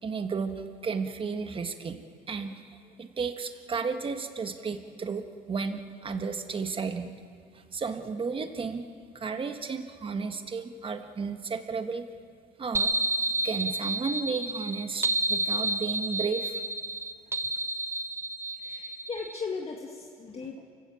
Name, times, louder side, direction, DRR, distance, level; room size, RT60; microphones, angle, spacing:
voice 1, 0.0-2.0 2.3-7.1 7.5-12.1 12.6-12.9 13.4-16.6, right 5 dB, 30° right, 7 dB, 1.6 m, -33 dB
sound 1, 12.7-19.4, right 2 dB, 15° right, 1.1 m, -30 dB
voice 2, 18.6-20.8, left 4 dB, 35° left, 1 dB, 1.8 m, -37 dB
28.5 x 16.5 x 7.1 m, 2.2 s
cardioid pair, 110°, 17 cm